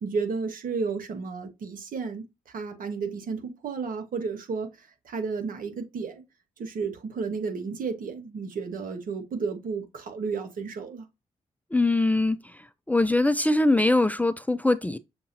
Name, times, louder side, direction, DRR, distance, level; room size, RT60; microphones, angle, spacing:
voice 1, 0.0-6.2 6.6-11.1, right 5 dB, 65° right, 1.2 m, -32 dB
voice 2, 11.7-12.4 12.9-15.0, left 2 dB, 10° left, 0.5 m, -22 dB
6.7 x 2.6 x 2.7 m
hypercardioid pair, 40°, 15 cm